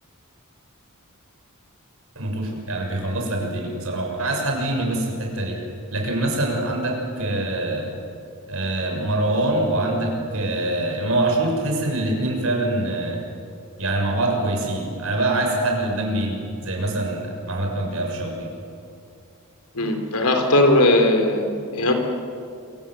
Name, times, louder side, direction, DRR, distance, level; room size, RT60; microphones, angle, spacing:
voice 1, 2.1-5.6 5.9-7.9 8.5-13.2 13.8-18.5, right 1 dB, 70° right, 1 dB, 6.7 m, -24 dB
voice 2, 19.7-21.5 21.7-21.9, left 1 dB, 90° left, 5 dB, 3.8 m, -18 dB
27.0 x 24.5 x 7.8 m, 2.4 s
head